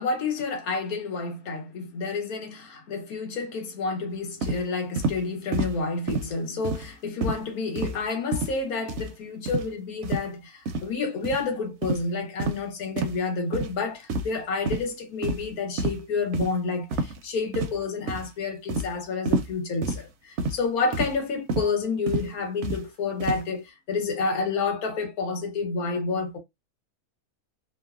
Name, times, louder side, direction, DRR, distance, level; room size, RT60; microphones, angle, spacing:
voice 1, 0.0-26.4, left 4 dB, 80° left, 1.4 m, -29 dB
sound 1, 4.4-4.6 5.0-5.2 5.5-5.8 6.1-6.3 6.6-6.9 7.2-7.4 7.8-8.0 8.3-8.6 8.9-9.1 9.5-9.7 10.0-10.3 10.7-10.9 11.2-11.4 11.8-12.0 12.4-12.6 13.0-13.2 13.5-13.7 14.1-14.4 14.6-14.8 15.2-15.5 15.8-16.0 16.3-16.5 16.9-17.2 17.5-17.8 18.1-18.3 18.7-18.9 19.3-19.5 19.8-20.0 20.4-20.6 20.9-21.1 21.5-21.7 22.1-22.3 22.6-22.8 23.2-23.4, right 2 dB, 65° right, 0.7 m, -28 dB
3.1 x 2.1 x 2.3 m
omnidirectional pair, 1.5 m